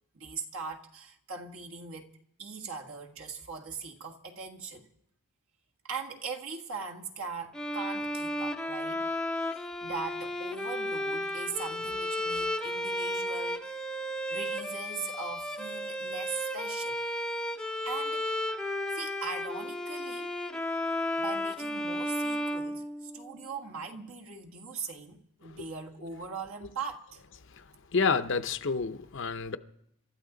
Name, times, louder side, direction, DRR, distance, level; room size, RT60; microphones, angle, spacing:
voice 1, 0.1-4.9 5.8-9.0 9.5-13.6 14.3-17.0 17.8-18.5 18.9-20.3 21.2-27.2, right 5 dB, 65° right, 1.7 m, -40 dB
Bowed string instrument, 7.5-23.4, left 1 dB, 5° left, 0.6 m, -33 dB
voice 2, 27.9-29.6, left 5 dB, 55° left, 0.7 m, -28 dB
27.0 x 13.0 x 3.9 m
head